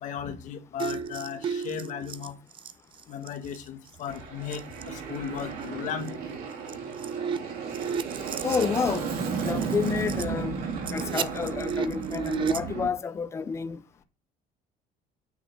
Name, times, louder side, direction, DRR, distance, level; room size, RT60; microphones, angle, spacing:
voice 1, 0.0-2.3 3.1-6.2, left 8 dB, 50° left, 1.7 m, -36 dB
sound 1, 0.8-3.7 3.9-4.2 4.5-4.9 5.4-5.5 6.1-6.2 6.5-10.2 10.7-12.6, right 7 dB, 30° right, 0.5 m, -34 dB
Aircraft, 4.1-12.9, right 5 dB, 65° right, 2.7 m, -34 dB
voice 2, 8.4-9.1 9.4-10.5 10.9-13.8, left 6 dB, 15° left, 0.5 m, -29 dB
9.4 x 4.7 x 7.8 m
cardioid pair, 175°, 16 cm